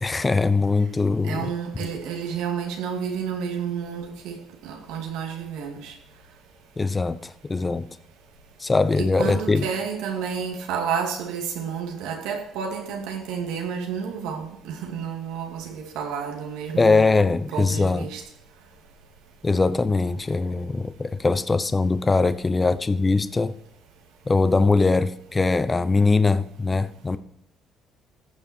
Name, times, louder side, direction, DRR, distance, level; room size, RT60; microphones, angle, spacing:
voice 1, 0.0-1.5 6.8-7.9 8.6-9.7 16.8-18.1 19.4-23.5 24.3-27.2, left 3 dB, 25° left, 0.8 m, -21 dB
voice 2, 1.2-5.9 9.0-17.2 17.5-18.2, right 7 dB, 90° right, 2.3 m, -30 dB
14.5 x 7.1 x 4.5 m
cardioid pair, 85°, 0 cm